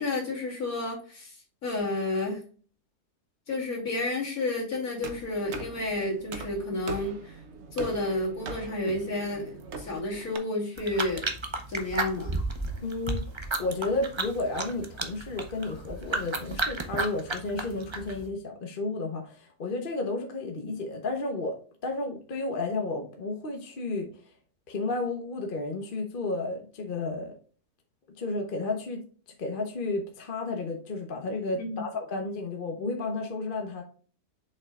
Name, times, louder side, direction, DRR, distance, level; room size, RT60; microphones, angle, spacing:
voice 1, 0.0-1.3 1.6-2.4 3.5-7.4 7.7-11.2 11.7-12.4 31.6-31.8, left 2 dB, 65° left, -4 dB, 3.2 m, -31 dB
sound 1, 5.0-10.4, right 4 dB, 50° right, 1.1 m, -41 dB
sound 2, 10.8-18.3, right 3 dB, 30° right, 0.5 m, -33 dB
voice 2, 12.8-13.2 13.6-24.1 24.7-27.4 28.2-29.0 29.4-33.8, left 3 dB, 40° left, 3 dB, 1.0 m, -32 dB
7.1 x 5.5 x 2.4 m, 0.40 s
omnidirectional pair, 1.7 m